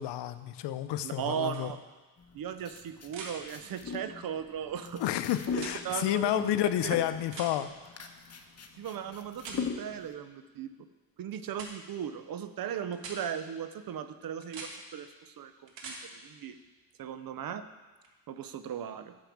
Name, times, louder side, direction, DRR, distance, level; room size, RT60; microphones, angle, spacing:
voice 1, 0.0-1.7 5.0-7.7, left 12 dB, 65° left, 12 dB, 0.7 m, -30 dB
voice 2, 1.0-1.8 2.3-5.0 5.6-6.5 6.8-7.0 8.8-10.7 11.2-16.6 17.0-17.6 18.3-19.2, right 8 dB, 50° right, 11 dB, 0.7 m, -37 dB
sound 1, 1.5-1.6 3.1-3.3 5.5-5.8 7.3-7.5 9.4-9.6 11.5-11.7 12.9-13.2 14.4-14.7 15.7-16.0 18.0-18.1, right 4 dB, 80° right, 1.4 m, -42 dB
sound 2, 2.2-10.1, left 6 dB, 35° left, 0.9 m, -41 dB
6.6 x 5.7 x 7.2 m, 1.2 s
supercardioid pair, 65°, 44 cm